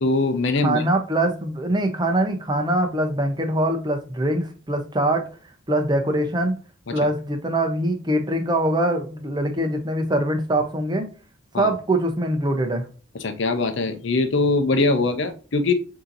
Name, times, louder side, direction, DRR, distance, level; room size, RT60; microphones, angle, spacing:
voice 1, 0.0-0.8 6.9-7.0 11.5-11.7 13.2-15.7, left 3 dB, 65° left, 0.6 m, -22 dB
voice 2, 0.6-5.3 5.7-6.6 6.9-11.1 11.5-12.8, right 1 dB, 20° right, 0.7 m, -23 dB
6.6 x 2.8 x 2.6 m
head